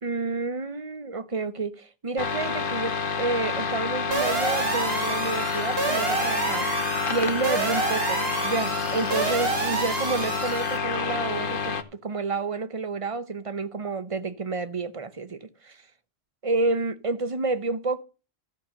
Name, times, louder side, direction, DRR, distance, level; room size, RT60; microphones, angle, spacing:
voice 1, 0.0-11.8 12.0-15.8 16.4-18.0, right 3 dB, 35° right, 0.8 m, -30 dB
sound 1, 2.2-11.8, left 5 dB, 55° left, 1.0 m, -29 dB
sound 2, 4.1-10.8, right 4 dB, 65° right, 1.6 m, -28 dB
13.5 x 5.8 x 6.6 m
omnidirectional pair, 1.1 m